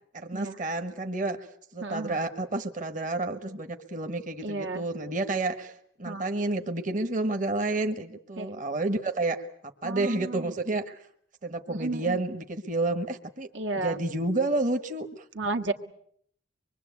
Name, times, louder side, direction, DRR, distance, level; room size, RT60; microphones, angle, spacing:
voice 1, 0.1-1.5 1.7-9.5 9.8-11.0 11.4-13.5 13.8-15.2, right 2 dB, 45° right, 7 dB, 1.3 m, -30 dB
voice 2, 1.8-2.2 4.4-4.8 6.0-6.2 8.4-8.5 9.8-10.5 11.7-12.2 13.5-14.0 15.3-15.7, right 2 dB, 80° right, 3 dB, 1.7 m, -32 dB
25.0 x 22.5 x 8.3 m, 0.66 s
head